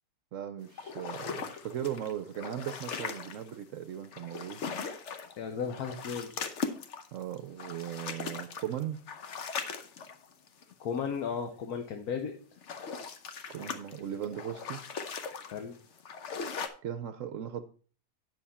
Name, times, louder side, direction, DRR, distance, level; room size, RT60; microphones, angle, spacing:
voice 1, 0.3-4.6 7.1-9.0 13.5-14.8 16.8-17.7, right 10 dB, 65° right, 9 dB, 0.9 m, -38 dB
sound 1, 0.8-3.6 4.0-5.4 5.6-10.7 12.4-16.7, left 5 dB, 55° left, 1.1 m, -39 dB
voice 2, 5.4-6.4 10.8-12.3 15.5-15.8, left 6 dB, 85° left, 5 dB, 1.4 m, -35 dB
9.3 x 6.3 x 4.2 m, 0.42 s
omnidirectional pair, 1.6 m